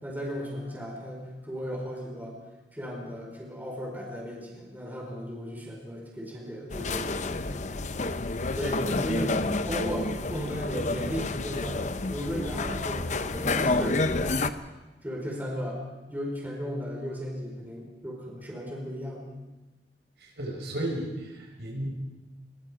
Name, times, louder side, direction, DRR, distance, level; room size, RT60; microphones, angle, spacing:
voice 1, 0.0-2.4 2.7-7.9 8.5-11.8 12.1-14.5 15.0-15.8 16.1-19.3, equal, 10° right, -2 dB, 4.7 m, -35 dB
sound 1, 6.7-14.5, left 3 dB, 45° left, 0.8 m, -29 dB
voice 2, 20.4-21.9, right 1 dB, 70° right, 0 dB, 5.8 m, -33 dB
23.5 x 22.0 x 5.1 m, 1.1 s
head